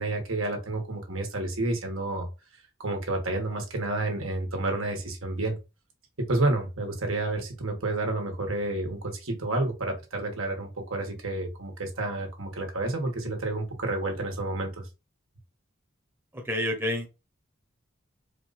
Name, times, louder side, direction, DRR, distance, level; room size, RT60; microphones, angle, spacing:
voice 1, 0.0-2.3 2.8-5.6 6.2-14.8, right 2 dB, 85° right, 2 dB, 1.5 m, -30 dB
voice 2, 16.3-17.1, left 1 dB, 10° right, 1 dB, 0.8 m, -29 dB
4.4 x 2.5 x 4.1 m, 0.27 s
head